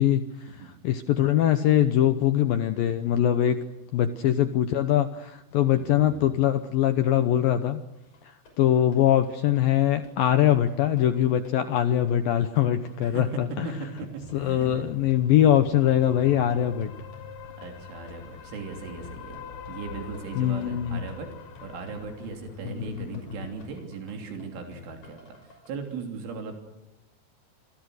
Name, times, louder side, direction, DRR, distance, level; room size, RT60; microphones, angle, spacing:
voice 1, 0.0-3.6 3.9-7.8 8.2-13.7 14.3-16.9 20.4-21.0 22.6-23.2, left 11 dB, 80° left, 9 dB, 2.0 m, -23 dB
voice 2, 5.8-6.3 13.0-13.3 13.6-14.9 17.6-19.4 19.7-21.3 21.6-26.6, right 4 dB, 80° right, 3 dB, 5.6 m, -38 dB
sound 1, 8.1-25.7, left 6 dB, 40° left, 7.1 m, -52 dB
sound 2, 14.2-23.8, left 6 dB, 60° left, 1.9 m, -44 dB
27.5 x 24.0 x 6.5 m, 0.91 s
omnidirectional pair, 5.5 m